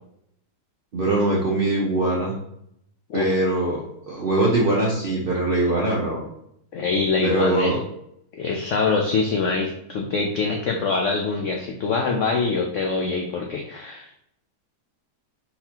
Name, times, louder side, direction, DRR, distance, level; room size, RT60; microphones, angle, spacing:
voice 1, 0.9-2.3 3.1-6.2 7.2-7.8, right 2 dB, 55° right, -4 dB, 0.6 m, -22 dB
voice 2, 6.7-7.8 8.4-14.2, left 4 dB, 75° left, 2 dB, 0.6 m, -24 dB
4.2 x 4.2 x 2.8 m, 0.74 s
omnidirectional pair, 1.8 m